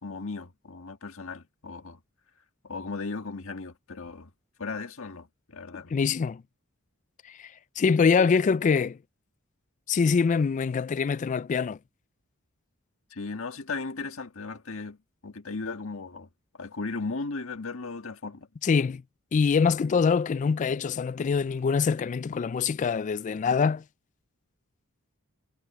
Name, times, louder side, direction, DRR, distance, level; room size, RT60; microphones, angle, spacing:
voice 1, 0.0-2.0 2.6-4.3 4.6-5.9 13.1-15.0 15.2-16.3 16.6-18.5, left 3 dB, 65° left, 1.7 m, -36 dB
voice 2, 5.9-6.4 7.2-9.0 9.9-11.8 18.6-19.0 19.3-23.8, left 5 dB, 35° left, 0.3 m, -24 dB
head